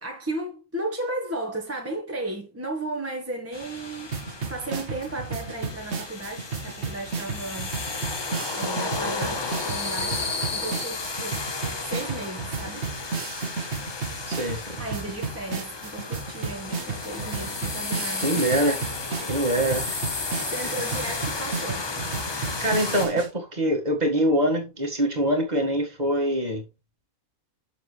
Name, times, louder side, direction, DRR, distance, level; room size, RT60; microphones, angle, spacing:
voice 1, 0.0-7.8 8.5-10.3 10.5-11.4 11.8-12.9 14.8-18.3 19.1-19.4 20.5-21.9, right 2 dB, 10° right, 1.3 m, -34 dB
sound 1, 3.5-23.1, left 3 dB, 30° left, 0.5 m, -33 dB
sound 2, 4.1-23.3, right 5 dB, 55° right, 1.4 m, -33 dB
voice 2, 14.3-14.8 18.2-18.8 19.3-20.0 22.6-26.6, right 1 dB, 30° right, 2.0 m, -24 dB
7.3 x 6.7 x 3.3 m
omnidirectional pair, 1.5 m